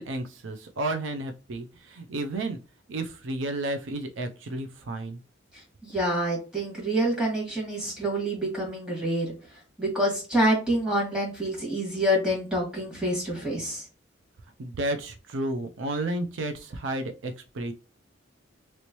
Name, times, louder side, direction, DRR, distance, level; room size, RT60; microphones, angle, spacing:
voice 1, 0.0-2.6 2.9-5.2 14.6-17.7, right 2 dB, 75° right, 7 dB, 0.5 m, -32 dB
voice 2, 5.8-9.3 9.8-13.8, right 1 dB, 5° right, -3 dB, 1.8 m, -27 dB
3.1 x 3.0 x 2.9 m, 0.33 s
head